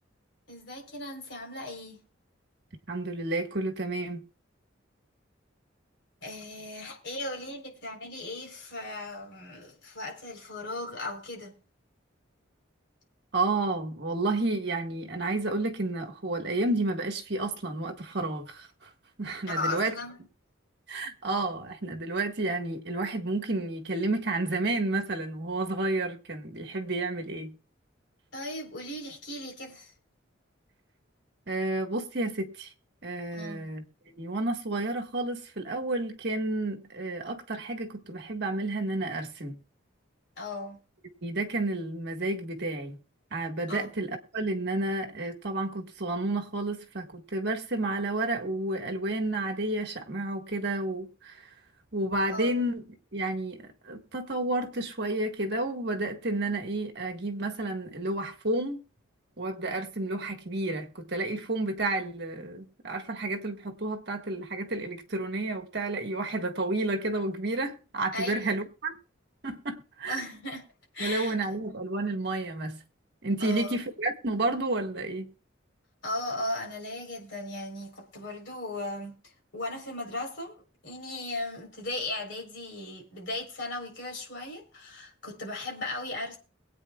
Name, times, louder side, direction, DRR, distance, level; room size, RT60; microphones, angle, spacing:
voice 1, 0.5-2.0 6.2-11.5 19.5-20.2 28.3-29.9 33.3-33.6 40.4-40.8 43.7-43.9 52.3-52.5 68.1-68.5 70.1-70.6 70.9-71.4 73.4-73.8 76.0-79.2 79.5-80.6 80.8-86.4, left 2 dB, 60° left, 4.0 m, -37 dB
voice 2, 2.9-4.2 13.3-18.9 19.2-19.9 20.9-27.5 31.5-32.7 33.0-39.6 41.0-43.0 43.3-51.5 51.9-52.8 53.1-58.8 59.4-68.9 69.4-70.2 71.0-72.8 73.2-75.3, right 2 dB, 55° right, 1.5 m, -31 dB
22.5 x 8.7 x 2.4 m
head